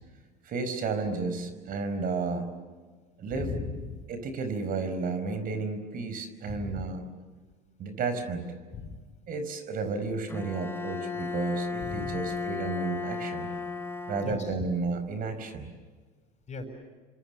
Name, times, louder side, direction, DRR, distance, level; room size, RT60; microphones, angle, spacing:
voice 1, 0.4-2.5 3.2-3.5 4.1-7.0 7.8-8.5 9.3-13.5 14.1-15.7, right 4 dB, 45° right, 10 dB, 5.0 m, -32 dB
voice 2, 3.3-4.0 6.5-6.9 8.7-9.0 11.8-12.2 14.2-14.5 16.5-16.6, left 4 dB, 35° left, 1 dB, 6.7 m, -37 dB
Bowed string instrument, 10.3-14.8, left 4 dB, 10° left, 2.8 m, -35 dB
30.0 x 25.5 x 6.9 m, 1.4 s
hypercardioid pair, 85°, 19 cm